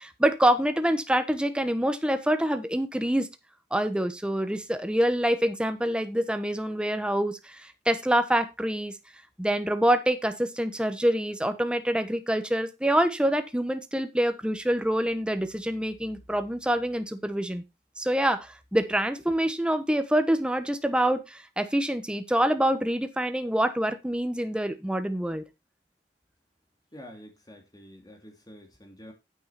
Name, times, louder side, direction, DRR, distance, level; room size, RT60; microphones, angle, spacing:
voice 1, 0.0-3.3 3.7-8.9 9.4-17.6 18.0-25.4, right 1 dB, 5° right, 1.2 m, -26 dB
voice 2, 26.9-29.1, equal, 25° left, 2.8 m, -48 dB
9.4 x 8.6 x 4.2 m
head